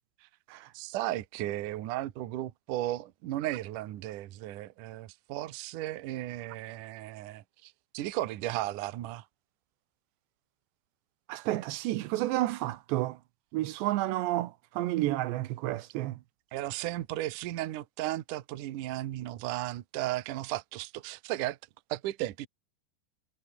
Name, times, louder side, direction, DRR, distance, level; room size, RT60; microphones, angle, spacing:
voice 1, 0.7-9.3 16.5-21.6 21.9-22.5, right 15 dB, 65° right, 2.1 m, -35 dB
voice 2, 11.3-13.2 13.5-16.2, right 16 dB, 80° right, 3.1 m, -30 dB
omnidirectional pair, 5.2 m